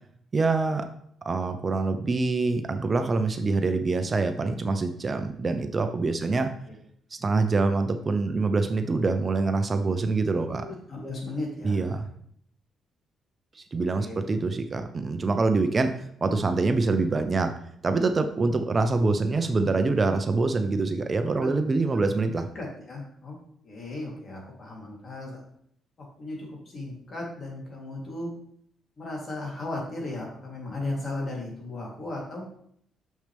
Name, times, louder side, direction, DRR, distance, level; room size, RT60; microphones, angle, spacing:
voice 1, 0.3-0.9 1.2-6.5 7.1-10.7 11.6-12.1 13.5-17.5 17.8-22.5, right 3 dB, 35° right, 7 dB, 0.6 m, -25 dB
voice 2, 10.4-11.8 13.9-14.2 21.3-21.5 22.5-23.4 23.6-25.4 26.0-26.4 26.7-28.3 29.0-32.4, left 2 dB, 45° left, -2 dB, 3.1 m, -36 dB
6.6 x 6.3 x 3.4 m, 0.67 s
cardioid pair, 90°, 0 cm